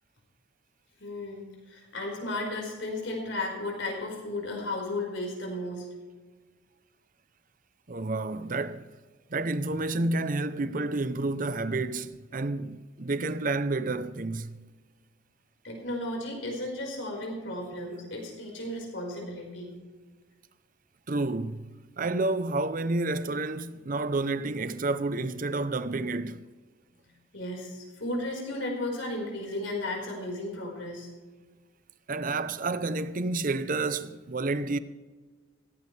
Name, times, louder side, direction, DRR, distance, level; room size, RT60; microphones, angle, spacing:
voice 1, 1.0-5.9 15.6-19.7 27.3-31.1, left 1 dB, 75° left, 5.0 m, -34 dB
voice 2, 7.9-8.8 9.3-14.6 21.1-21.7 22.0-26.4 32.1-34.8, right 2 dB, 45° right, 0.6 m, -30 dB
17.0 x 16.0 x 3.4 m
head